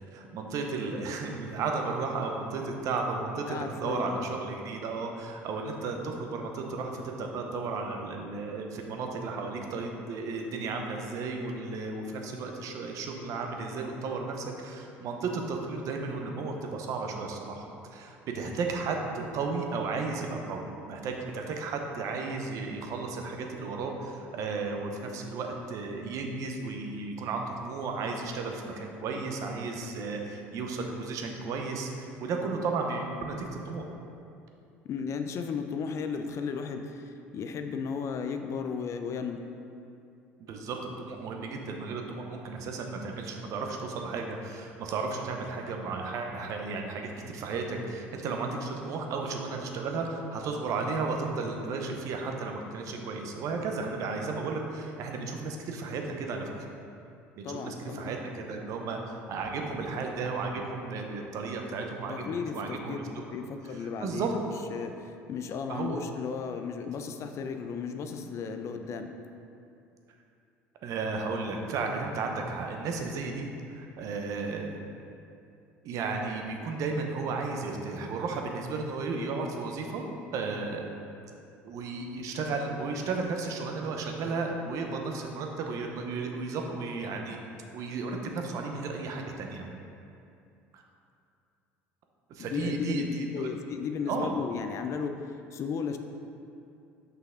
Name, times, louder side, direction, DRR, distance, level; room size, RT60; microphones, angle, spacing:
voice 1, 0.1-33.8 40.4-56.7 57.4-59.0 59.3-64.3 65.7-66.0 70.8-74.8 75.8-80.0 80.3-80.8 81.6-87.4 87.7-89.7 90.7-90.8 92.3-93.5 94.1-94.4, right 4 dB, 60° right, 2 dB, 0.8 m, -34 dB
voice 2, 3.5-4.3 34.8-39.4 57.4-58.1 62.1-63.0 63.3-64.4 64.7-69.1 92.4-93.1 93.3-96.0, left 6 dB, 50° left, 7 dB, 0.5 m, -34 dB
5.9 x 5.6 x 3.8 m, 2.6 s
hypercardioid pair, 80°, 6 cm